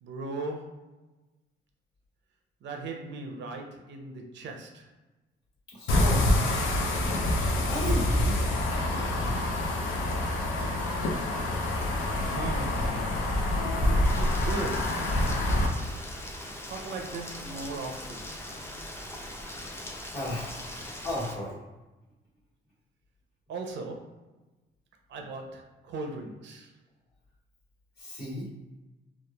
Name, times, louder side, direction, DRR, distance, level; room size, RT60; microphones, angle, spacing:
voice 1, 0.0-0.9 2.6-4.9 12.2-13.0 14.2-15.1 16.6-18.4 23.5-24.2 25.1-26.7, right 3 dB, 65° right, 3 dB, 0.5 m, -38 dB
voice 2, 5.7-6.4 7.7-9.4 20.1-20.8 21.0-21.6 28.0-28.5, left 1 dB, 55° left, -5 dB, 1.3 m, -35 dB
sound 1, 5.9-15.7, left 1 dB, 85° left, 0.5 m, -26 dB
Rain, 14.0-21.3, equal, 10° left, 0.4 m, -38 dB
2.9 x 2.2 x 2.2 m, 1.1 s
cardioid pair, 90°, 20 cm